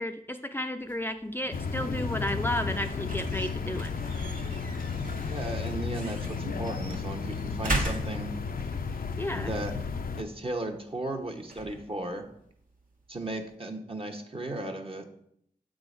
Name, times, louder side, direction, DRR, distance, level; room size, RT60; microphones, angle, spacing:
voice 1, 0.0-3.9 9.2-9.5, left 1 dB, 15° left, 6 dB, 0.5 m, -32 dB
sound 1, 0.8-13.6, right 2 dB, 65° right, 1.2 m, -40 dB
sound 2, 1.5-10.2, left 5 dB, 75° left, 0.5 m, -33 dB
voice 2, 5.3-8.3 9.3-9.7 10.2-12.3 13.1-15.1, right 1 dB, 40° right, 3 dB, 1.1 m, -35 dB
7.5 x 3.8 x 5.0 m, 0.72 s
cardioid pair, 40°, 15 cm